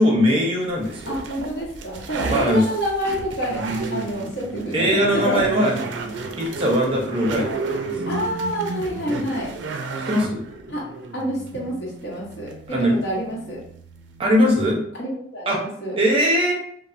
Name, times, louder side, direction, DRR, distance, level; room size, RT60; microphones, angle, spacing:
voice 1, 0.0-1.2 2.3-2.6 4.7-5.7 6.4-7.9 10.1-10.4 12.7-13.0 14.2-14.8 15.5-15.6 16.0-16.5, equal, 30° right, -2 dB, 0.6 m, -20 dB
sound 1, 0.8-14.8, right 3 dB, 75° right, 0.4 m, -32 dB
voice 2, 1.1-3.6 3.9-5.0 5.2-5.5 8.1-9.5 10.7-10.8 11.1-13.6 15.0-16.0, equal, 60° left, -3 dB, 0.9 m, -28 dB
3.1 x 2.0 x 2.5 m, 0.65 s
head